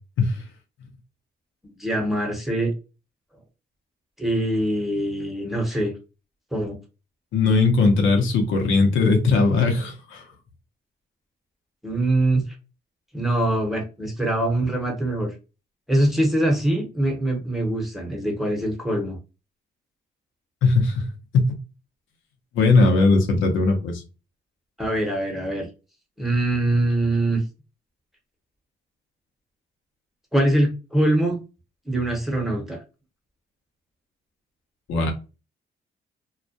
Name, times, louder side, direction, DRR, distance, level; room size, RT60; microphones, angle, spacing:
voice 1, 1.6-2.7 4.2-5.9 6.5-6.8 11.8-12.4 13.1-15.3 15.9-19.2 24.8-25.7 26.2-27.4 30.3-31.4 31.9-32.8, right 1 dB, ahead, 0.9 m, -23 dB
voice 2, 7.3-10.2 20.6-21.1 21.3-21.5 22.5-24.0 34.9-35.1, left 3 dB, 80° left, 0.7 m, -19 dB
2.3 x 2.1 x 2.6 m
cardioid pair, 90°, 20 cm